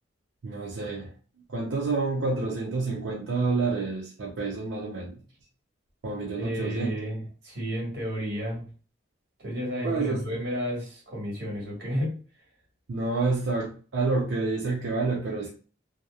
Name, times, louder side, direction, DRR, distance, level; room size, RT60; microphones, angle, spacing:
voice 1, 0.4-1.1 1.5-5.1 6.0-6.9 9.8-10.4 12.9-15.5, right 3 dB, 85° right, -2 dB, 0.5 m, -28 dB
voice 2, 6.3-8.6 9.4-12.2, equal, 55° right, -3 dB, 1.4 m, -32 dB
2.8 x 2.0 x 2.3 m, 0.38 s
head